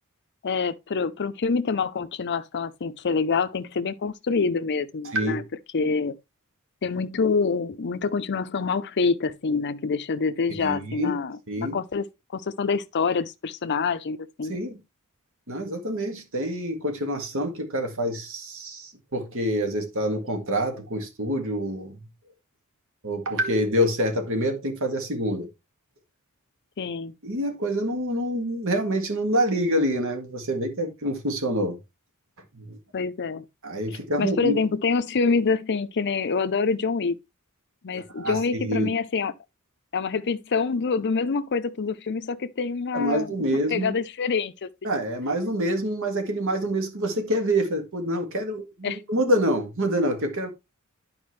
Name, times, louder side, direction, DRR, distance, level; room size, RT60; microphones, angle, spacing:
voice 1, 0.4-5.4 5.7-6.1 6.8-12.1 12.3-14.6 26.8-27.1 32.9-33.5 34.2-37.2 37.8-39.3 39.9-43.3 43.7-44.7 48.8-49.0, left 4 dB, 50° left, 0.6 m, -26 dB
voice 2, 5.0-5.4 10.6-11.2 11.5-11.8 14.5-14.8 15.5-22.0 23.0-25.5 27.2-31.8 32.5-32.8 33.6-34.6 38.2-38.9 42.9-44.0 44.8-50.5, equal, 65° right, 1.9 m, -26 dB
10.5 x 5.0 x 3.2 m
head